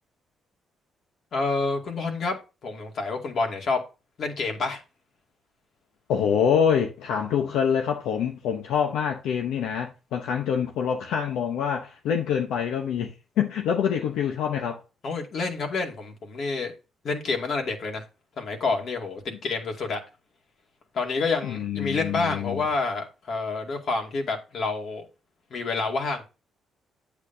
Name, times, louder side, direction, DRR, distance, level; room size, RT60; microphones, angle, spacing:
voice 1, 1.3-2.4 2.6-3.8 4.2-4.8 14.2-14.3 15.0-16.7 17.0-18.0 18.4-20.0 20.9-25.1 25.5-26.2, left 3 dB, 60° left, 2.3 m, -28 dB
voice 2, 6.1-14.8 21.4-22.6, left 7 dB, 85° left, 0.9 m, -26 dB
8.5 x 8.2 x 2.7 m
cardioid pair, 90°, 0 cm